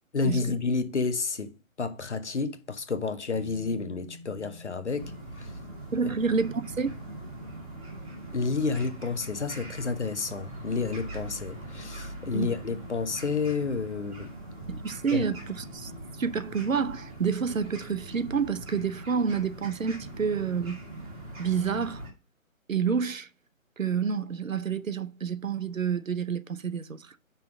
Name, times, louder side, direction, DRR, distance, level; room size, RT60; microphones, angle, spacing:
voice 1, 0.1-5.1 5.4-5.5 6.0-6.1 8.3-14.3 15.1-15.2, left 4 dB, 55° left, 1.0 m, -30 dB
sound 1, 3.3-12.5 12.8-12.9, equal, 35° right, 0.7 m, -50 dB
sound 2, 5.0-22.1, right 1 dB, 10° right, 1.7 m, -42 dB
voice 2, 5.9-7.0 12.3-12.5 14.7-15.9 16.2-20.8 21.4-22.1 22.7-23.3 23.8-27.1, right 6 dB, 70° right, 0.8 m, -29 dB
5.7 x 3.8 x 6.0 m
figure-of-eight pair, 145°, 41 cm